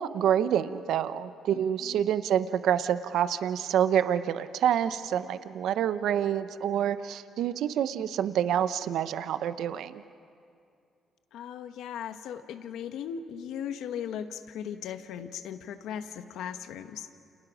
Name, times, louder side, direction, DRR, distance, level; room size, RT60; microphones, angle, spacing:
voice 1, 0.0-10.0, right 9 dB, 80° right, 12 dB, 0.8 m, -27 dB
voice 2, 1.5-2.1 11.3-17.2, left 8 dB, 85° left, 9 dB, 1.2 m, -38 dB
29.5 x 29.0 x 6.3 m, 2.4 s
cardioid pair, 90°, 0 cm